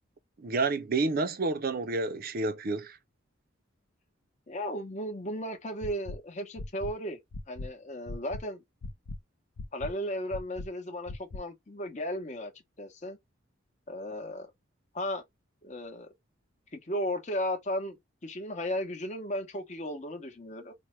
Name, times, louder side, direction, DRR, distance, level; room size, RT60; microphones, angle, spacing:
voice 1, 0.4-3.0, right 3 dB, 45° right, 0.5 m, -29 dB
voice 2, 4.5-7.2 7.5-8.6 9.7-12.5 12.8-13.2 13.9-14.5 14.9-15.2 15.6-16.1 16.7-20.7, equal, 35° left, 0.8 m, -35 dB
sound 1, 5.8-6.2 6.6-6.9 7.3-7.7 8.1-8.4 8.8-9.2 9.6-9.9 10.3-10.7 11.1-11.4, left 2 dB, 85° left, 0.5 m, -38 dB
4.5 x 2.1 x 3.0 m
head